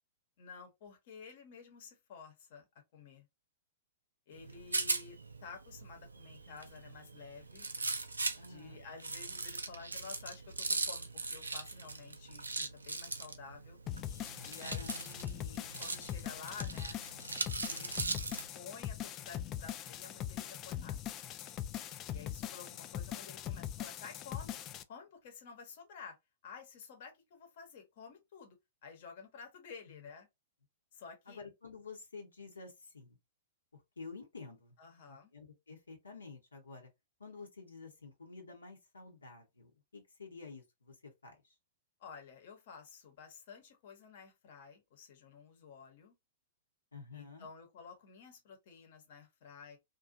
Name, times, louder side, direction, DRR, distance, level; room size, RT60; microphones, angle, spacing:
voice 1, 0.4-2.6 2.9-3.3 4.3-7.7 8.5-13.8 14.4-17.0 17.6-17.9 18.5-21.0 22.1-24.6 24.9-26.2 26.4-28.6 28.8-30.3 30.9-31.4 34.8-35.3 42.0-46.1 47.1-49.8, left 5 dB, 55° left, 1.0 m, -52 dB
Rattle, 4.3-18.5, right 3 dB, 85° right, 0.4 m, -40 dB
voice 2, 8.3-8.8 14.6-15.1 29.9-30.0 31.3-33.2 33.7-34.8 35.1-36.9 37.2-41.5 46.9-47.5, left 4 dB, 85° left, 0.9 m, -50 dB
sound 1, 13.9-24.8, left 11 dB, 35° left, 0.3 m, -41 dB
2.6 x 2.3 x 2.6 m
figure-of-eight pair, 110°, 0 cm